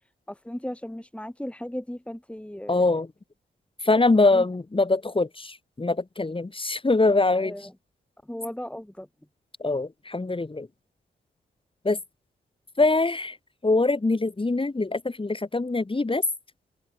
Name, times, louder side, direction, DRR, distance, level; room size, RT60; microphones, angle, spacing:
voice 1, 0.5-2.8 4.3-4.4 7.4-7.6 8.3-9.1, left 1 dB, 5° left, 2.6 m, -36 dB
voice 2, 2.7-3.1 3.8-7.5 9.6-10.7 11.8-12.0 12.8-13.4 13.6-16.2, left 3 dB, 25° left, 4.3 m, -23 dB
cardioid pair, 60°, 20 cm